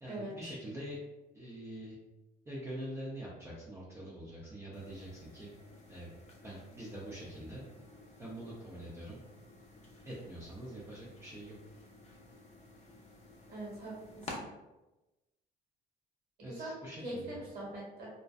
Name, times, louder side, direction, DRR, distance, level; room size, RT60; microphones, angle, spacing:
voice 1, 0.0-1.0 1.3-2.0 2.5-5.5 5.9-6.1 6.4-7.6 8.2-9.2 10.1-11.6 16.4-17.4, right 1 dB, 15° right, -6 dB, 0.5 m, -44 dB
sound 1, 4.7-14.4, left 2 dB, 40° left, 0.5 m, -53 dB
voice 2, 13.5-14.4 16.4-16.7 17.0-18.1, right 1 dB, 65° right, -4 dB, 1.2 m, -42 dB
2.5 x 2.1 x 2.3 m, 1.0 s
cardioid pair, 110°, 17 cm